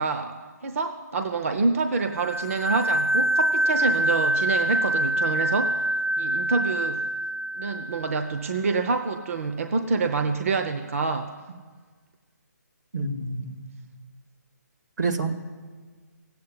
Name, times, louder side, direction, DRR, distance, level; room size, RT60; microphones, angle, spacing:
voice 1, 0.0-5.8 6.2-7.0 7.6-11.3, right 4 dB, 50° right, 7 dB, 0.8 m, -27 dB
sound 1, 2.1-8.6, right 1 dB, 5° right, 0.5 m, -25 dB
voice 2, 12.9-13.7 15.0-15.3, right 3 dB, 80° right, 5 dB, 2.0 m, -28 dB
16.0 x 8.5 x 9.6 m, 1.5 s
hypercardioid pair, 165°, 10 cm